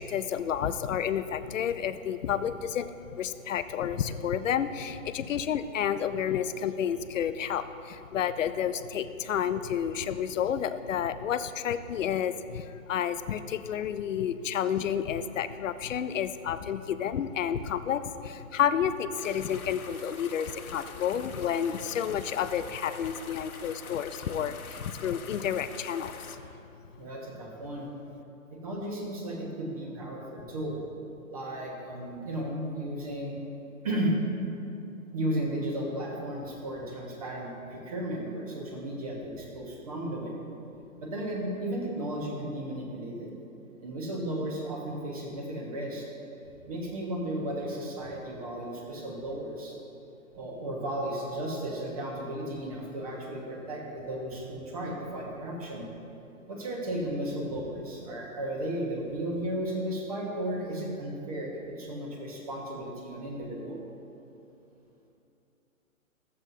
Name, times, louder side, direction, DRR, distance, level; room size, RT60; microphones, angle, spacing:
voice 1, 0.0-26.1, left 8 dB, 65° left, 12 dB, 0.5 m, -30 dB
sound 1, 19.1-26.4, left 5 dB, 80° left, 1.0 m, -45 dB
voice 2, 27.0-27.9 28.6-30.8 31.3-33.4 33.8-34.1 35.1-40.4 41.0-43.3 43.8-46.1 46.7-49.7 50.4-55.9 56.5-63.8, right 1 dB, 25° right, -1 dB, 1.2 m, -34 dB
13.5 x 7.7 x 2.7 m, 2.8 s
hypercardioid pair, 170°, 42 cm